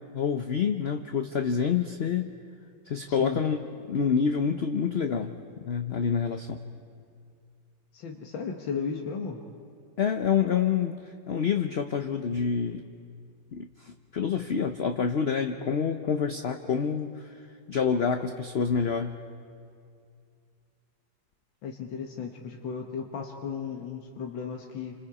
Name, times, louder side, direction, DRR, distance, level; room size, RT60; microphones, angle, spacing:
voice 1, 0.1-2.3 2.9-3.6 3.9-6.6 10.0-12.8 13.5-17.4 17.7-19.2, left 6 dB, 55° left, 6 dB, 0.7 m, -27 dB
voice 2, 3.1-3.4 7.9-9.4 21.6-25.0, left 6 dB, 85° left, 2 dB, 1.9 m, -35 dB
29.0 x 26.0 x 4.9 m, 2.3 s
omnidirectional pair, 2.0 m